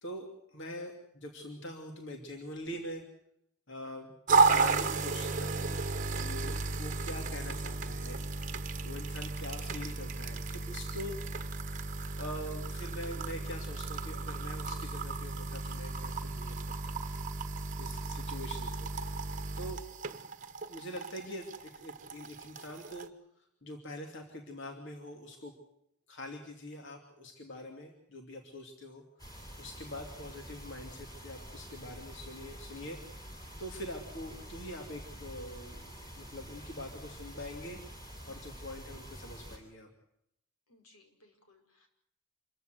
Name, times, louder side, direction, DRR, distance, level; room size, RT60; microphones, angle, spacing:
voice 1, 0.0-3.0 3.7-4.1 4.5-5.8 6.1-11.2 12.2-17.0 17.8-18.9 19.6-19.8 20.7-23.1 23.6-25.5 26.1-29.0 29.6-33.0 33.2-35.9 36.2-39.9, left 1 dB, 55° left, 3 dB, 2.9 m, -44 dB
sound 1, 4.3-23.1, right 3 dB, 35° right, 1.2 m, -34 dB
sound 2, 29.2-39.6, equal, 15° left, 7.6 m, -47 dB
voice 2, 40.7-41.9, left 2 dB, 85° left, 5 dB, 5.4 m, -64 dB
27.0 x 15.0 x 8.1 m, 0.77 s
head